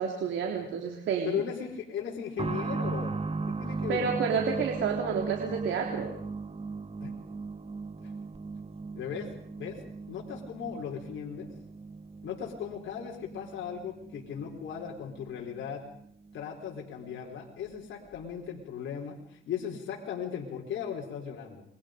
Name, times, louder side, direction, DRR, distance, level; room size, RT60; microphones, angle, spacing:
voice 1, 0.0-1.4 3.9-6.1, right 6 dB, 75° right, 2 dB, 3.7 m, -30 dB
voice 2, 1.2-3.1 3.5-4.1 7.0-7.1 8.0-8.1 8.9-9.3 9.6-9.8 10.1-11.5 12.2-15.8 16.3-21.6, left 8 dB, 70° left, -1 dB, 4.4 m, -37 dB
sound 1, 2.4-16.8 17.1-17.2 18.1-18.2, right 4 dB, 30° right, 1.6 m, -38 dB
29.0 x 23.0 x 5.2 m, 0.70 s
cardioid pair, 90°, 20 cm